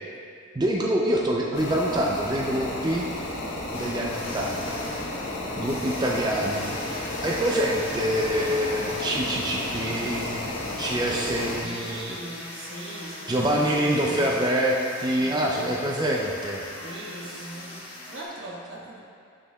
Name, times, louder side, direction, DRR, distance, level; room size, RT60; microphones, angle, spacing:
voice 1, 0.5-3.1 3.7-4.8 5.6-10.5 10.8-12.1 13.3-16.7, right 1 dB, 20° right, -2 dB, 0.4 m, -26 dB
sound 1, 1.5-11.6, left 1 dB, 65° left, 1.0 m, -33 dB
sound 2, 3.7-18.2, left 1 dB, 30° left, 1.3 m, -40 dB
voice 2, 11.3-14.3 15.1-15.9 16.7-19.0, right 1 dB, 70° right, -4 dB, 1.3 m, -40 dB
9.7 x 7.6 x 2.3 m, 2.4 s
head